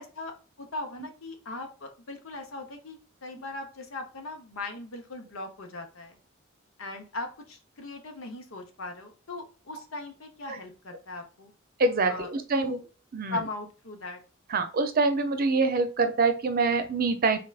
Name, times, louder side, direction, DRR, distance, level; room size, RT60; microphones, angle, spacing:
voice 1, 0.0-6.2 6.8-11.5 12.1-12.3 12.6-12.8 13.3-14.2, left 2 dB, 85° left, 4 dB, 0.9 m, -39 dB
voice 2, 11.8-12.8 13.1-13.4 14.5-17.4, right 3 dB, 45° right, 8 dB, 0.6 m, -25 dB
3.8 x 3.4 x 2.4 m, 0.36 s
head